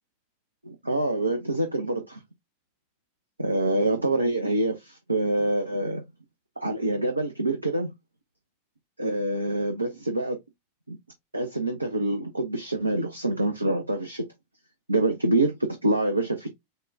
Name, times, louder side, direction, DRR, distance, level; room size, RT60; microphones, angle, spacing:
voice 1, 0.6-2.2 3.4-6.0 6.6-7.9 9.0-10.4 10.9-11.0 11.3-14.3 14.9-16.5, right 2 dB, 85° right, 0.7 m, -26 dB
6.6 x 2.3 x 2.7 m
figure-of-eight pair, 90°, 0 cm